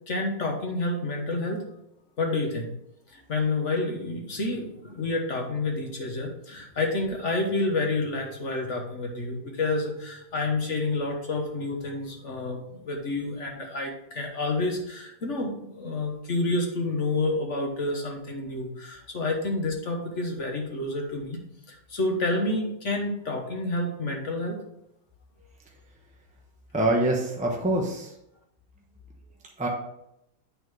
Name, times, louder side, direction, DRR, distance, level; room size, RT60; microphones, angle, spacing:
voice 1, 0.1-1.6 2.2-2.7 3.1-21.4 21.7-24.6, left 2 dB, 45° left, 1 dB, 1.2 m, -29 dB
voice 2, 26.7-28.1 29.6-29.7, right 1 dB, 10° right, -1 dB, 0.3 m, -25 dB
8.6 x 4.0 x 4.7 m, 0.81 s
omnidirectional pair, 2.1 m